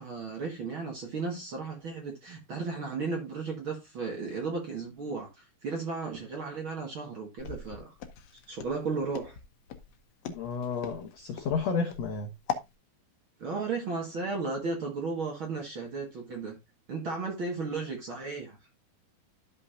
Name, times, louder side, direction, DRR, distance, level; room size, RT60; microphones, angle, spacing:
voice 1, 0.0-7.9 8.3-9.4 13.4-16.6 16.9-18.6, right 4 dB, 50° right, 1.7 m, -34 dB
Walk footsteps, 7.4-12.7, left 7 dB, 75° left, 1.6 m, -39 dB
voice 2, 10.2-12.3, left 5 dB, 90° left, 1.4 m, -31 dB
13.0 x 5.5 x 2.6 m
omnidirectional pair, 4.3 m